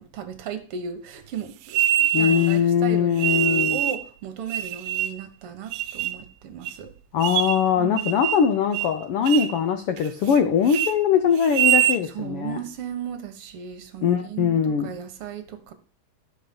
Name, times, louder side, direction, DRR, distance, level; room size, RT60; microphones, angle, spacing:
voice 1, 0.0-6.9 7.8-8.1 12.1-15.7, right 7 dB, 60° right, 1.8 m, -36 dB
sound 1, 1.7-2.5 3.2-4.0 4.5-5.3 5.7-6.2 6.7-6.8 7.2-7.7 8.0-8.5 8.7-9.0 9.3-9.6 10.0-10.4 10.7-10.9 11.4-12.0, right 12 dB, 80° right, 1.9 m, -24 dB
voice 2, 2.1-3.8 7.1-12.6 14.0-14.9, left 7 dB, 80° left, 1.3 m, -21 dB
13.0 x 5.8 x 5.2 m
omnidirectional pair, 3.5 m